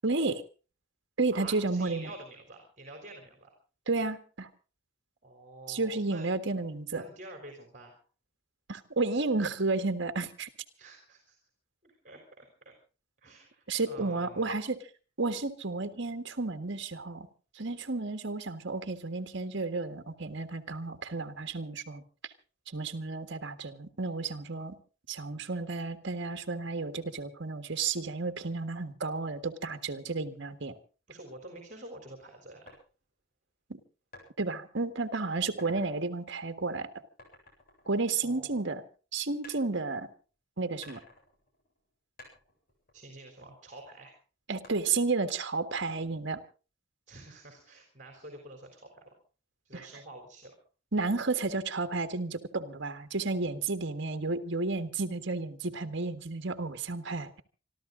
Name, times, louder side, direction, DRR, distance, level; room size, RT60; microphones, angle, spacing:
voice 1, 0.0-0.4 1.2-2.1 3.9-4.5 5.7-7.0 8.7-10.5 13.7-14.8 15.2-17.3 17.5-22.0 22.7-24.8 25.1-30.7 33.7-33.8 34.4-36.9 37.9-38.8 39.1-40.1 40.6-41.0 44.5-46.4 49.7-49.8 50.9-57.4, right 3 dB, 65° right, 7 dB, 1.6 m, -32 dB
voice 2, 1.3-3.5 5.2-6.3 6.9-8.0 10.8-11.4 11.8-12.8 13.2-14.6 31.1-32.8 38.2-38.7 42.9-44.1 47.1-49.1 49.6-50.6, right 2 dB, 40° right, 3 dB, 3.8 m, -48 dB
sound 1, 32.7-32.8 34.1-34.3 34.8-35.1 35.4-35.9 37.2-38.7 39.4-40.3 40.8-41.9 42.2-43.8 44.6-45.2, left 2 dB, 50° left, 7.8 m, -53 dB
26.0 x 13.0 x 3.9 m, 0.36 s
head